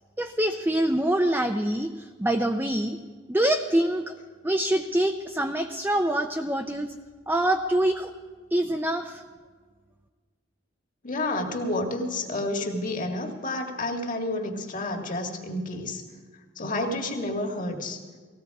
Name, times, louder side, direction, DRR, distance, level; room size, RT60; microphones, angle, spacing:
voice 1, 0.2-3.0 3.3-4.1 4.4-6.9 7.3-8.1 8.5-9.2, right 1 dB, 10° right, 5 dB, 0.5 m, -25 dB
voice 2, 11.0-16.0 16.6-18.0, left 2 dB, 40° left, 2 dB, 2.0 m, -30 dB
19.0 x 16.0 x 4.8 m, 1.5 s
head